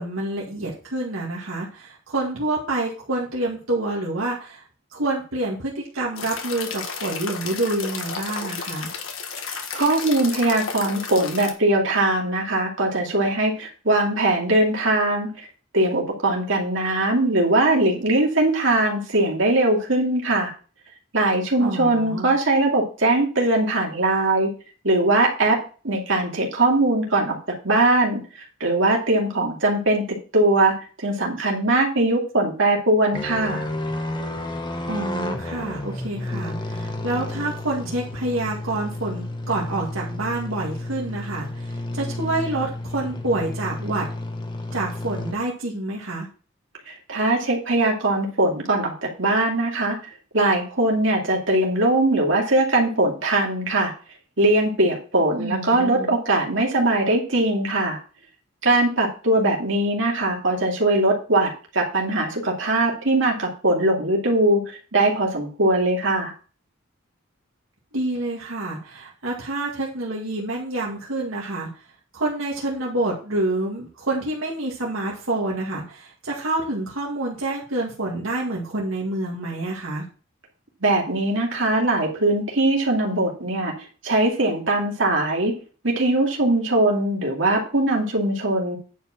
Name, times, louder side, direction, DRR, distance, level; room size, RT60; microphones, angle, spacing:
voice 1, 0.0-4.7 4.9-8.9 21.6-22.3 34.9-44.1 44.7-46.3 55.4-56.2 67.9-71.8 72.1-80.1, right 2 dB, 85° right, -3 dB, 2.2 m, -27 dB
sound 1, 6.2-11.5, left 5 dB, 75° left, 1.6 m, -32 dB
voice 2, 9.5-15.3 15.7-20.5 21.1-24.5 24.8-25.6 25.8-27.4 27.6-33.6 46.9-50.0 50.3-53.9 54.4-58.0 58.6-64.6 64.9-66.3 80.8-83.7 84.0-85.5 85.8-88.8, right 2 dB, 70° right, -1 dB, 2.6 m, -21 dB
sound 2, 33.1-45.3, left 1 dB, 20° left, 1.1 m, -31 dB
10.0 x 5.0 x 6.0 m, 0.37 s
head